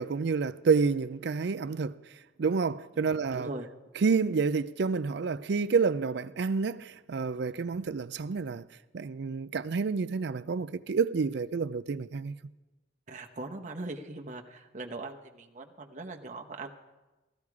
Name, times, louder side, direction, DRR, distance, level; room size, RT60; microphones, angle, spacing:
voice 1, 0.0-2.0 2.4-3.5 4.0-8.6 8.9-12.3, right 5 dB, 65° right, 0.4 m, -29 dB
voice 2, 3.3-3.7 13.1-16.7, right 2 dB, 45° right, 1.0 m, -40 dB
15.5 x 13.5 x 4.8 m
head